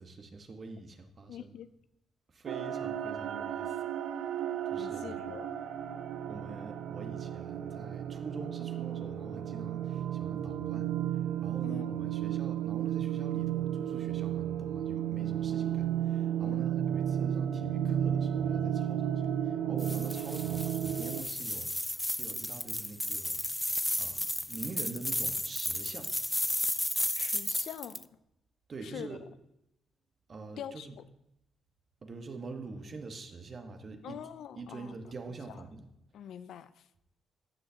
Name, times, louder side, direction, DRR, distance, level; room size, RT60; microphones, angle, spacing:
voice 1, 0.0-1.5 2.3-3.8 4.6-5.3 6.3-10.9 11.4-23.4 24.0-26.1 28.7-29.2 30.3-31.0 32.0-34.2 34.6-35.9, right 3 dB, 45° right, 5 dB, 1.2 m, -45 dB
voice 2, 1.3-1.7 4.8-5.5 11.6-11.9 16.4-16.7 27.1-28.1 28.8-29.2 30.6-30.9 34.0-35.0 35.5-35.6 36.1-36.9, left 9 dB, 75° left, 14 dB, 0.4 m, -44 dB
sound 1, 2.5-21.2, right 10 dB, 85° right, 0.4 m, -33 dB
sound 2, 19.8-28.0, left 1 dB, 5° left, 0.3 m, -33 dB
15.0 x 6.5 x 2.8 m, 0.83 s
cardioid pair, 85°, 0 cm